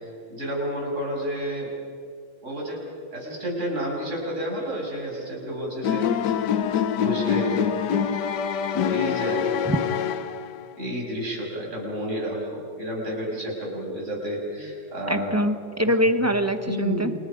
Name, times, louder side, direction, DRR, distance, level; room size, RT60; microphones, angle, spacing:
voice 1, 0.0-1.7 2.4-2.8 3.1-6.4 7.0-7.7 8.5-9.8 10.8-15.4 15.8-15.9 16.2-16.3 16.6-17.2, equal, 35° right, -2 dB, 7.4 m, -31 dB
sound 1, 5.8-10.7, left 8 dB, 60° left, 1.4 m, -25 dB
voice 2, 15.1-17.1, equal, 10° right, 8 dB, 0.7 m, -23 dB
29.5 x 28.5 x 5.3 m, 2.2 s
omnidirectional pair, 2.3 m